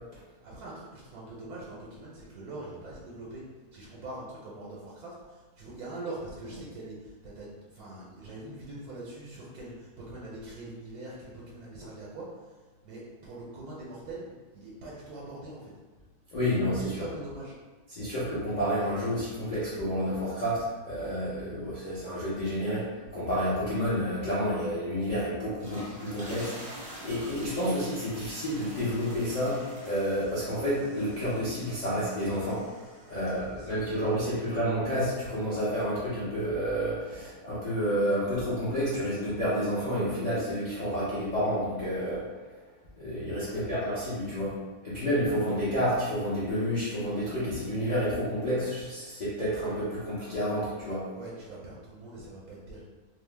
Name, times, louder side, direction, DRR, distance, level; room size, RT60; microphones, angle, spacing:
voice 1, 0.4-3.4 3.7-12.6 12.8-15.7 16.7-17.5 33.2-34.5 43.4-43.7 51.1-52.8, right 2 dB, 80° right, -6 dB, 1.1 m, -43 dB
voice 2, 16.3-17.1 17.9-32.6 33.1-42.2 43.0-44.5 44.8-51.0, equal, 60° left, -11 dB, 0.4 m, -30 dB
sound 1, 25.5-33.8, equal, 45° right, 0.5 m, -47 dB
2.6 x 2.0 x 3.2 m, 1.3 s
omnidirectional pair, 1.6 m